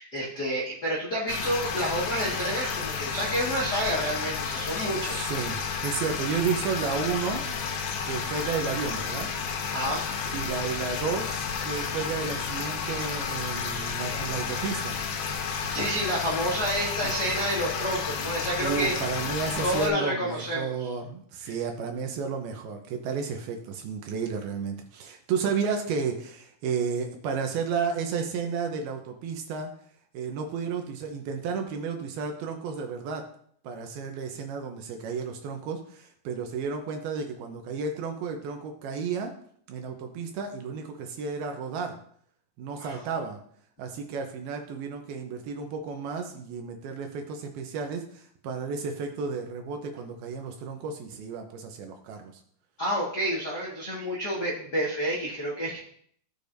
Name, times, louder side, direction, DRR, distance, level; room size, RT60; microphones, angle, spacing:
voice 1, 0.0-5.3 9.7-10.2 15.5-18.9 19.6-20.9 21.4-21.5 42.8-43.0 52.8-55.8, right 1 dB, 55° left, -6 dB, 1.0 m, -29 dB
sound 1, 1.3-19.9, left 6 dB, 75° left, 2.8 m, -31 dB
voice 2, 4.9-7.4 8.0-9.3 10.3-11.3 11.6-15.0 17.0-17.2 18.6-29.7 30.1-33.2 33.6-39.3 39.7-42.0 42.6-43.4 43.8-52.3, right 5 dB, 75° right, 4 dB, 2.6 m, -32 dB
16.0 x 6.7 x 2.7 m, 0.62 s
omnidirectional pair, 4.9 m